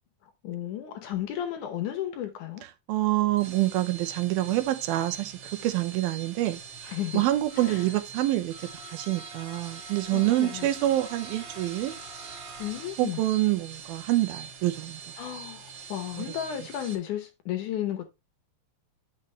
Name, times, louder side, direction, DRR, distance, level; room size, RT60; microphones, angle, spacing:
voice 1, 0.4-2.6 6.9-7.2 7.6-7.8 10.1-10.7 12.6-13.2 15.2-18.0, left 11 dB, 70° left, 2.1 m, -33 dB
voice 2, 2.9-8.5 8.9-12.0 13.0-15.0, right 15 dB, 85° right, 2.7 m, -26 dB
sound 1, 3.2-16.9, right 5 dB, 50° right, 2.4 m, -43 dB
8.9 x 6.3 x 3.2 m
omnidirectional pair, 4.2 m